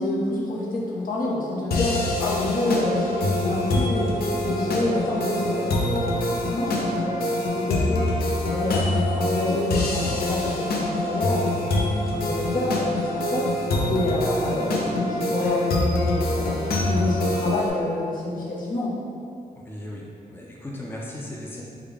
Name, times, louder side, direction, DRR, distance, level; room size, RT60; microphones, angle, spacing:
voice 1, 0.0-11.7 12.1-18.9, left 2 dB, 65° left, -6 dB, 0.8 m, -28 dB
sound 1, 1.7-17.7, left 1 dB, 90° left, 0.4 m, -25 dB
voice 2, 19.6-21.6, left 1 dB, 15° left, -3 dB, 0.4 m, -37 dB
3.3 x 2.3 x 3.5 m, 2.4 s
cardioid pair, 75°, 15 cm